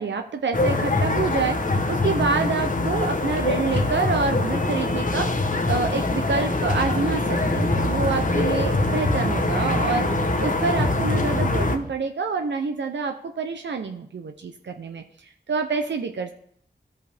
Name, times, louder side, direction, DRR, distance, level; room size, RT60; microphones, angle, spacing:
voice 1, 0.0-1.6 1.9-5.3 5.6-10.1 10.4-16.3, right 4 dB, 90° right, 5 dB, 0.6 m, -27 dB
sound 1, 0.5-11.8, left 2 dB, 45° left, 1.0 m, -23 dB
sound 2, 6.9-11.9, right 4 dB, 50° right, 0.6 m, -32 dB
13.0 x 5.3 x 3.4 m, 0.65 s
wide cardioid pair, 75°, 18 cm